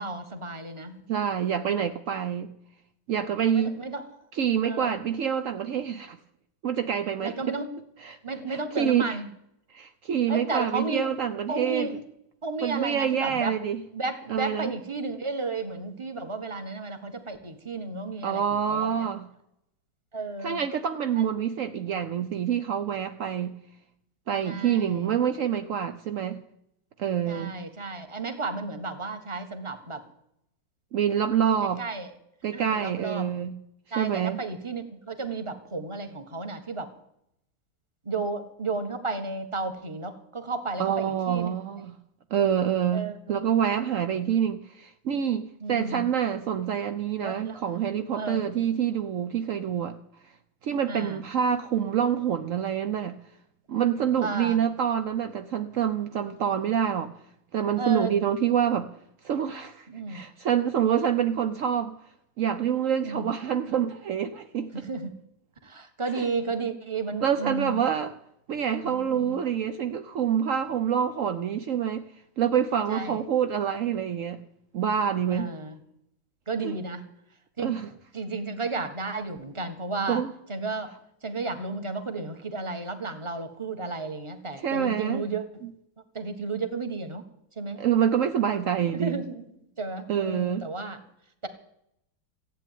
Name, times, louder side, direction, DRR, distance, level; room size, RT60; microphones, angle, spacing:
voice 1, 0.0-0.9 1.7-1.8 3.4-4.0 4.6-5.0 7.2-7.6 8.2-9.3 10.3-11.1 11.5-11.9 12.4-13.5 13.9-18.4 18.7-18.9 20.1-20.6 21.2-21.3 24.4-25.0 27.3-30.0 31.8-32.1 32.5-33.2 33.9-36.9 38.0-41.5 42.9-43.4 45.6-46.0 47.2-47.6 48.1-48.4 50.9-51.2 54.2-54.6 57.8-58.1 59.9-60.2 63.0-63.3 64.8-65.1 65.6-67.8 68.8-69.4 72.9-73.2 75.3-75.8 76.5-77.0 77.6-77.7 78.1-80.2 80.5-80.9 81.2-85.4 86.1-87.2 87.6-87.8 88.9-89.5 89.8-91.0, right 3 dB, 15° right, 7 dB, 1.4 m, -33 dB
voice 2, 1.1-2.5 3.1-3.8 4.3-6.2 6.6-7.6 8.0-8.2 8.5-9.2 9.7-12.0 12.6-13.8 14.3-14.7 18.2-19.3 20.4-23.6 24.3-26.4 27.0-27.5 30.9-31.8 32.4-33.6 33.9-34.4 40.8-42.0 42.3-50.0 50.6-53.2 53.7-57.1 57.5-58.9 59.2-62.0 62.4-64.9 66.1-66.3 67.2-68.2 68.5-72.1 72.4-74.4 74.7-75.5 76.6-76.8 77.6-77.9 80.1-80.3 84.6-85.3 85.6-85.7 87.8-89.2 90.1-90.7, right 8 dB, 70° right, 9 dB, 0.7 m, -27 dB
15.5 x 8.8 x 9.3 m, 0.78 s
omnidirectional pair, 2.2 m